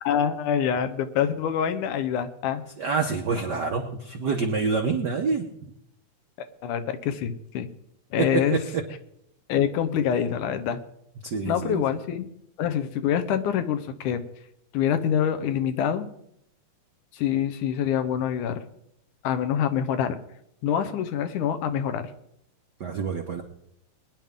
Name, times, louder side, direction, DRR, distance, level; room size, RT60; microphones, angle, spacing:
voice 1, 0.0-2.6 6.6-7.7 8.1-8.6 9.5-10.8 11.5-12.3 12.6-14.2 14.7-16.1 17.1-18.6 19.2-20.2 20.6-22.1, left 9 dB, 90° left, 9 dB, 2.5 m, -25 dB
voice 2, 2.8-5.5 8.2-8.8 11.2-11.8 22.8-23.4, right 5 dB, 80° right, 3 dB, 0.9 m, -27 dB
21.5 x 10.5 x 3.7 m, 0.76 s
omnidirectional pair, 3.5 m